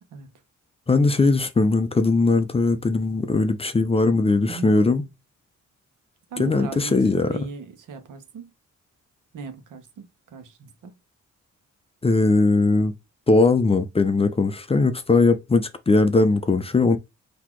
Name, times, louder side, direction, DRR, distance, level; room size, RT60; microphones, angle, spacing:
voice 1, 0.9-5.0 6.4-7.3 12.0-12.9 13.3-17.0, left 3 dB, 20° left, 0.4 m, -19 dB
voice 2, 4.4-4.7 6.3-8.4 9.3-10.9, right 5 dB, 85° right, 1.0 m, -38 dB
4.1 x 2.8 x 4.5 m
cardioid pair, 130°, 30 cm